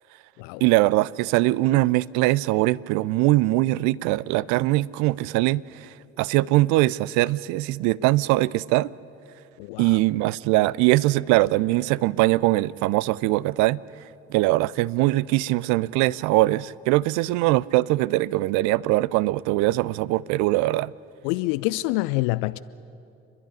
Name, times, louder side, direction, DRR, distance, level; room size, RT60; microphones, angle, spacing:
voice 1, 0.6-5.9 6.2-8.9 9.8-13.8 14.3-20.9, right 18 dB, 60° right, 0.5 m, -22 dB
voice 2, 9.6-10.0 21.2-22.6, left 20 dB, 65° left, 0.5 m, -26 dB
28.5 x 11.0 x 9.9 m
figure-of-eight pair, 50°, 33 cm